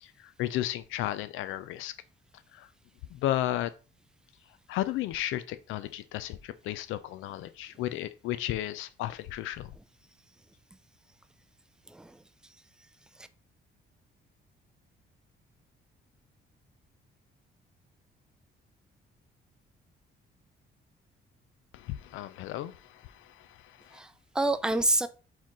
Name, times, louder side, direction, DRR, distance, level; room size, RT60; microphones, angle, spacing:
voice 1, 0.0-1.9 2.5-2.7 3.1-3.7 4.7-9.7 21.7-24.0, left 14 dB, 90° left, 0.4 m, -34 dB
voice 2, 11.9-12.2 13.2-13.3 23.9-25.1, right 2 dB, 5° right, 0.3 m, -28 dB
4.3 x 3.8 x 3.0 m
cardioid pair, 90°, 20 cm